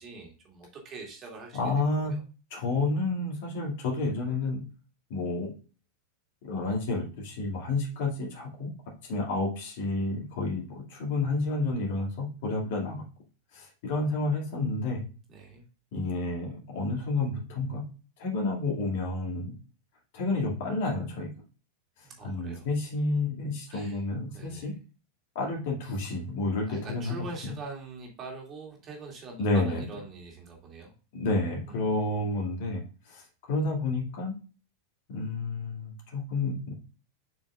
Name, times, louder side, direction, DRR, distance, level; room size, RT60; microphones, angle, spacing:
voice 1, 0.0-1.6 2.0-2.2 15.3-15.6 22.0-22.7 23.7-24.0 24.3-24.7 26.7-30.9 31.7-32.3, right 3 dB, 30° right, -1 dB, 2.5 m, -43 dB
voice 2, 1.5-2.1 2.5-4.6 5.1-5.5 6.4-8.7 9.0-13.0 13.5-15.1 15.9-17.8 18.2-19.5 20.1-21.3 22.2-24.7 25.3-27.5 29.4-29.8 31.1-34.4 35.1-36.7, left 2 dB, 50° left, -1 dB, 2.4 m, -30 dB
7.1 x 5.8 x 2.5 m, 0.35 s
figure-of-eight pair, 90°, 0 cm